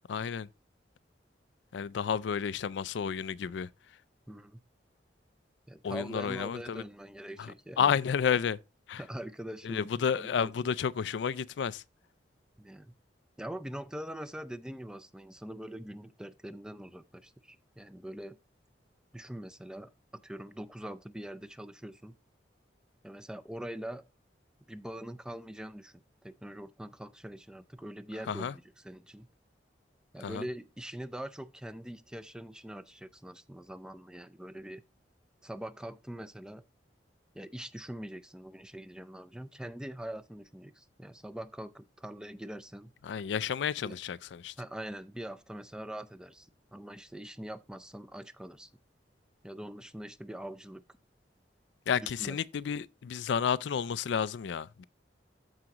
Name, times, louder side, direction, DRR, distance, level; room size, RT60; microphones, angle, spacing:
voice 1, 0.1-0.5 1.7-3.7 5.8-6.8 7.4-7.5 7.8-8.6 8.9-9.0 9.6-11.8 28.3-28.5 30.2-30.4 43.0-44.5 51.9-54.8, left 7 dB, 90° left, 0.4 m, -31 dB
voice 2, 4.3-4.6 5.7-8.0 9.0-10.5 12.6-13.0 13.4-18.4 19.1-22.2 23.0-24.0 24.7-29.3 30.1-34.8 35.4-36.6 37.3-42.9 43.8-44.0 44.6-48.7 49.4-50.8 52.0-52.4, right 1 dB, 5° right, 0.4 m, -43 dB
14.0 x 4.9 x 2.9 m
head